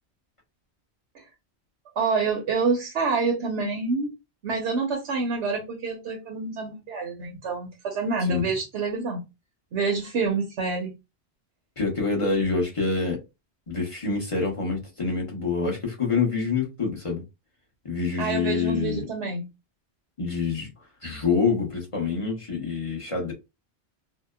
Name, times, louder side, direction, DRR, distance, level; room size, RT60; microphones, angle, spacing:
voice 1, 2.0-4.1 4.4-9.2 9.7-10.9 18.2-19.5, right 4 dB, 80° right, 1.0 m, -27 dB
voice 2, 11.8-13.2 13.7-17.2 17.8-19.0 20.2-20.7 21.0-23.3, left 4 dB, 35° left, 0.7 m, -26 dB
2.8 x 2.0 x 2.2 m
omnidirectional pair, 1.1 m